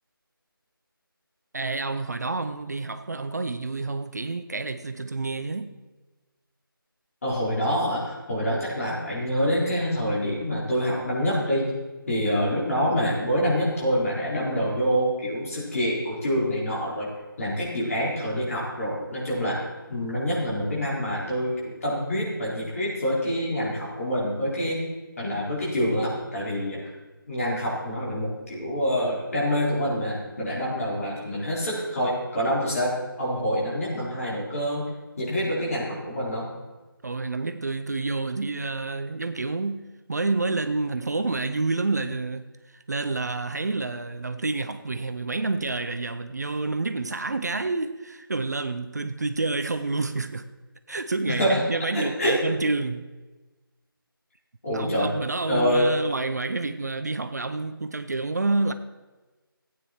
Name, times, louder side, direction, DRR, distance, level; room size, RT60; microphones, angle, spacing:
voice 1, 1.5-5.8 37.0-42.5 42.9-50.5 50.9-53.1 54.7-58.7, right 3 dB, 45° right, 0.6 m, -28 dB
voice 2, 7.2-11.7 12.1-17.1 17.4-19.6 19.9-24.8 25.2-26.8 27.3-34.9 35.2-36.5 51.2-51.6 51.9-52.4 54.6-55.1 55.5-55.9, equal, 40° left, 4.7 m, -26 dB
16.0 x 9.3 x 4.5 m
figure-of-eight pair, 165°, 12 cm